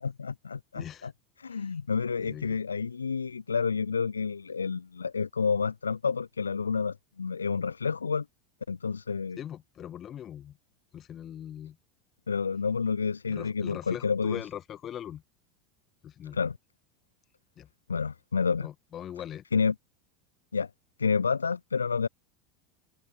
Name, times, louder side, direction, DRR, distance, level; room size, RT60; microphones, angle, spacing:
voice 1, 0.2-1.1 1.4-8.3 8.7-9.4 12.3-14.4 16.3-16.5 17.9-18.7 19.5-19.7 20.5-20.7 21.0-22.1, left 5 dB, 80° left, 0.4 m, -29 dB
voice 2, 0.7-1.1 1.5-1.8 2.2-2.6 9.4-10.6 10.9-11.8 13.3-15.2 16.0-16.4 17.6-17.7 18.6-19.4, left 10 dB, 35° left, 1.8 m, -41 dB
figure-of-eight pair, 80°, 0 cm